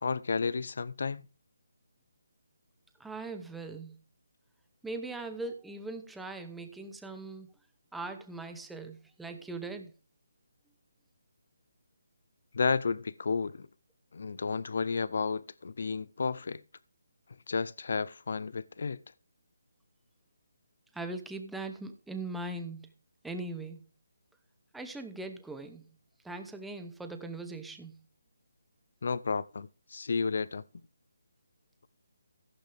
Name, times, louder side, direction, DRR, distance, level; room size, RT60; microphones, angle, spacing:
voice 1, 0.0-1.3 12.5-13.7 14.1-16.6 17.5-19.0 29.0-30.6, left 5 dB, 50° left, 0.6 m, -32 dB
voice 2, 3.0-3.9 4.8-7.5 7.9-9.9 20.9-22.9 23.2-23.8 24.7-25.8 26.2-28.0, right 2 dB, ahead, 0.8 m, -40 dB
15.0 x 8.0 x 3.4 m
hypercardioid pair, 175°, 0 cm